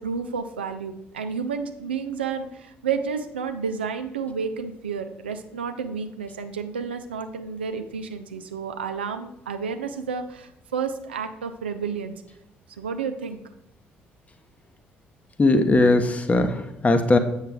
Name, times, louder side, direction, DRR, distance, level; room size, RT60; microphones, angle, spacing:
voice 1, 0.0-12.1 12.8-13.4, right 6 dB, 80° right, 7 dB, 0.5 m, -31 dB
voice 2, 15.4-17.2, left 2 dB, 25° left, 8 dB, 1.0 m, -19 dB
7.8 x 6.4 x 3.6 m, 0.82 s
figure-of-eight pair, 45°, 6 cm